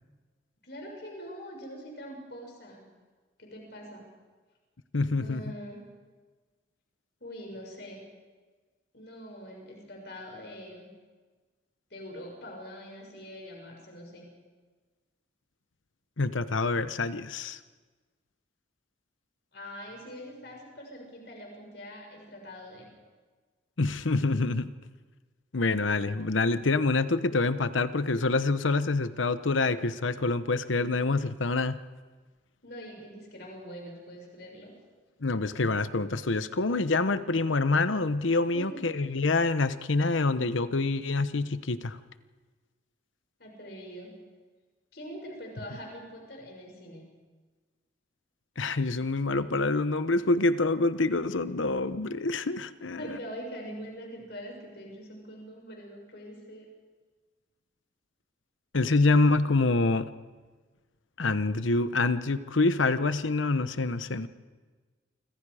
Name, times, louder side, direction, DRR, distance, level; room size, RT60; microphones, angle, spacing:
voice 1, 0.6-2.9 3.4-4.1 5.2-5.8 7.2-8.0 8.9-10.9 11.9-14.3 19.5-22.9 32.6-34.7 38.5-38.9 43.4-44.1 44.9-47.0 53.0-56.7, equal, 60° left, 0 dB, 6.7 m, -43 dB
voice 2, 4.9-5.4 16.2-17.6 23.8-24.7 25.5-31.8 35.2-42.0 48.6-53.2 58.7-60.1 61.2-64.3, left 3 dB, 90° left, 12 dB, 1.0 m, -26 dB
28.5 x 25.5 x 5.0 m, 1.4 s
head